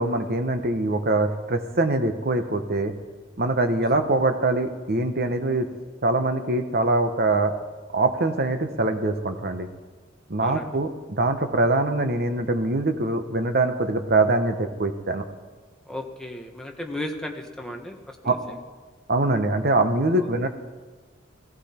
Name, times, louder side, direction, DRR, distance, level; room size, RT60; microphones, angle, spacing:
voice 1, 0.0-2.9 3.4-5.7 6.0-7.5 7.9-9.7 10.3-15.2 18.2-18.4 19.1-20.5, right 2 dB, 50° right, 7 dB, 1.1 m, -23 dB
voice 2, 10.4-10.7 15.9-18.6 20.1-20.5, left 1 dB, 5° left, 1 dB, 1.3 m, -35 dB
16.0 x 15.5 x 4.4 m, 1.4 s
head